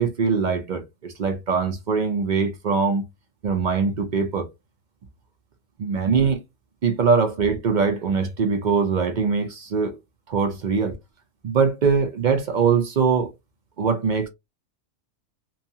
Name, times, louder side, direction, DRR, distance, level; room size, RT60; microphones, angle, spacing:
voice 1, 0.0-3.0 3.4-4.5 5.8-6.4 6.8-10.0 10.3-11.0 11.4-13.3 13.8-14.3, right 5 dB, 55° right, 0.5 m, -22 dB
2.7 x 2.3 x 2.7 m
omnidirectional pair, 1.3 m